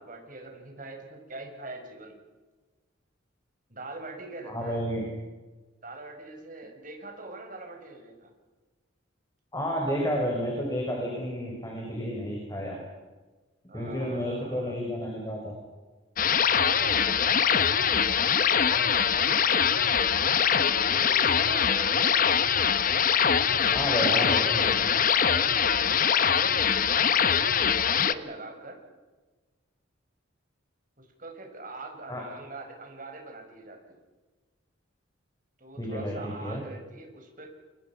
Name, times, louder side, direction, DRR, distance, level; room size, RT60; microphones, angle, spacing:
voice 1, 0.0-2.2 3.7-4.8 5.8-8.3 13.7-14.8 16.4-22.3 23.9-24.7 25.3-28.8 31.0-34.0 35.6-37.5, right 2 dB, 40° right, 2 dB, 5.8 m, -43 dB
voice 2, 4.4-5.0 9.5-12.8 13.7-15.6 23.7-24.7 32.1-32.2 35.8-36.6, equal, 15° left, -1 dB, 5.3 m, -31 dB
sound 1, 16.2-28.1, left 7 dB, 40° left, 0.9 m, -23 dB
28.5 x 24.0 x 6.0 m, 1.3 s
head